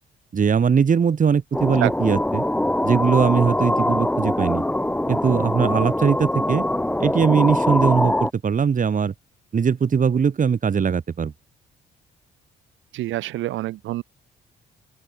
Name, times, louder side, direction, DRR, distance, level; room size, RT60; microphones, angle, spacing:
voice 1, 0.3-2.4 2.8-4.6 5.1-6.6 7.0-9.1 9.5-11.3, right 6 dB, 40° right, 2.2 m, -20 dB
sound 1, 1.5-8.3, left 1 dB, 5° left, 1.5 m, -23 dB
voice 2, 12.9-14.0, right 16 dB, 80° right, 0.6 m, -26 dB
open air
cardioid pair, 90°, 20 cm